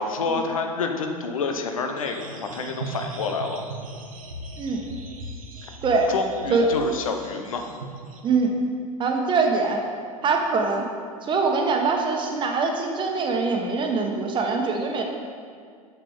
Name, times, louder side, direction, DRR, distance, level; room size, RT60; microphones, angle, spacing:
voice 1, 0.0-3.6 6.1-7.7, left 4 dB, 70° left, 5 dB, 0.9 m, -28 dB
sound 1, 2.0-8.2, right 2 dB, 70° right, 1.0 m, -39 dB
voice 2, 5.8-6.1 6.5-6.7 8.2-8.5 9.0-9.8 10.2-10.8 11.2-15.0, right 4 dB, 25° right, 3 dB, 1.2 m, -23 dB
7.4 x 7.0 x 4.9 m, 2.1 s
figure-of-eight pair, 80°, 18 cm